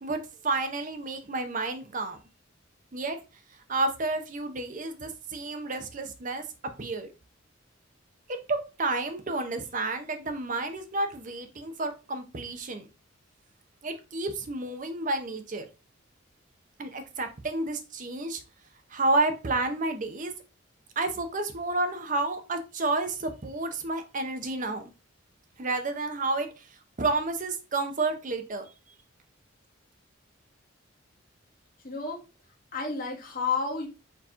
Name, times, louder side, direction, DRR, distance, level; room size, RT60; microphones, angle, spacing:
voice 1, 0.0-2.2 2.9-3.2 3.7-6.4 6.8-7.1 8.5-12.9 13.8-15.7 16.8-18.4 18.9-20.3 21.0-24.8 25.6-26.5 27.0-28.7, right 2 dB, 40° right, 0.7 m, -30 dB
voice 2, 31.8-32.2 32.7-33.9, left 5 dB, 45° left, 1.2 m, -30 dB
4.5 x 2.9 x 3.6 m
head